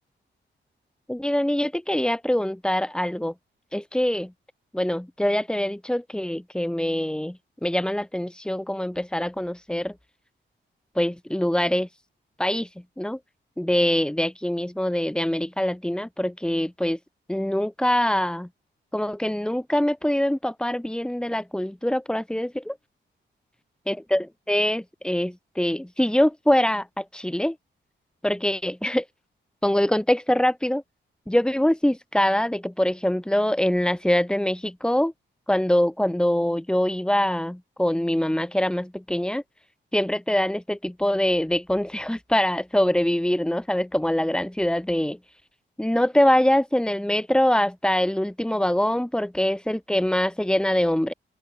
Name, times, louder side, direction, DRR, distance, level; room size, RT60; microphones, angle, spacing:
voice 1, 1.1-3.3 3.7-4.3 4.7-9.9 10.9-11.9 12.4-12.7 13.0-13.2 13.6-17.0 17.3-18.5 18.9-22.8 23.9-27.6 28.2-29.0 29.6-30.8 31.3-35.1 35.5-39.4 39.9-45.2 45.8-51.1, left 1 dB, 5° left, 7.8 m, -24 dB
open air
wide cardioid pair, 155°, 20 cm